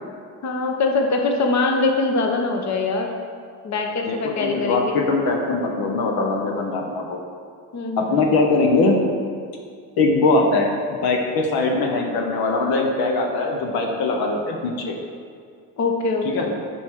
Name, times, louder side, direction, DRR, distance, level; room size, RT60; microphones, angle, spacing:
voice 1, 0.4-3.1 3.6-5.0 7.7-8.3 15.8-16.5, left 3 dB, 50° left, 2 dB, 1.0 m, -23 dB
voice 2, 4.1-7.2 8.0-9.0 10.0-10.7 11.0-15.0 16.3-16.4, left 3 dB, 75° left, 1 dB, 1.0 m, -21 dB
9.3 x 4.7 x 3.8 m, 2.2 s
supercardioid pair, 80°, 37 cm